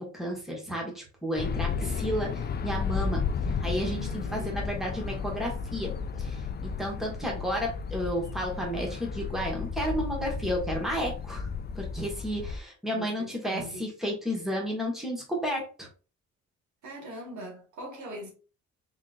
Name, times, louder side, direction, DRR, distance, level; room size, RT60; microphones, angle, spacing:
voice 1, 0.0-5.9 6.2-11.5 11.7-15.9, equal, ahead, 1.6 m, -32 dB
sound 1, 1.4-12.6, left 5 dB, 35° left, 0.4 m, -33 dB
voice 2, 3.8-4.6 12.9-13.9 16.8-18.3, right 1 dB, 70° right, 1.7 m, -42 dB
3.8 x 3.5 x 2.5 m
cardioid pair, 90°, 30 cm